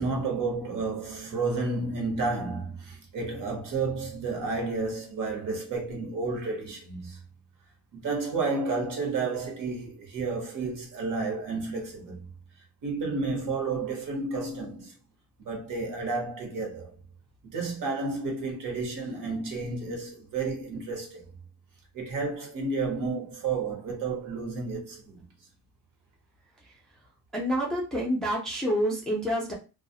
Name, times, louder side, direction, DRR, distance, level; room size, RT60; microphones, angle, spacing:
voice 1, 0.0-7.2 7.9-12.2 12.8-14.9 15.4-17.0 17.4-21.3 21.9-25.2, right 3 dB, 55° right, 1.0 m, -31 dB
voice 2, 27.3-29.5, equal, ahead, 0.4 m, -28 dB
2.3 x 2.0 x 2.7 m
cardioid pair, 155°, 37 cm